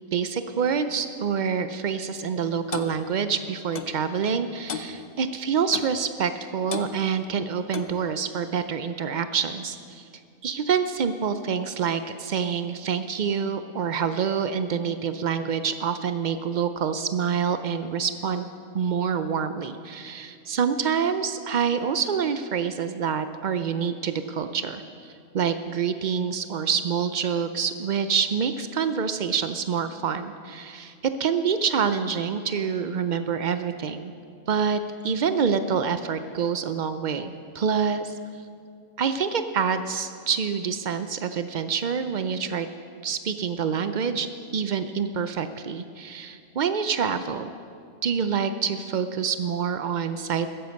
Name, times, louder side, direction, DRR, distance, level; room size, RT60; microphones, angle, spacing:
voice 1, 0.1-10.1 10.4-18.5 18.7-34.1 34.5-38.2 39.0-42.7 43.0-44.3 44.5-47.5 48.0-50.5, right 6 dB, 85° right, 10 dB, 0.4 m, -27 dB
Clock, 2.7-2.9 3.7-4.0 4.7-4.9 5.7-6.0 6.7-6.9 7.7-8.0, left 6 dB, 45° left, 0.6 m, -33 dB
15.0 x 10.5 x 6.4 m, 2.3 s
omnidirectional pair, 1.5 m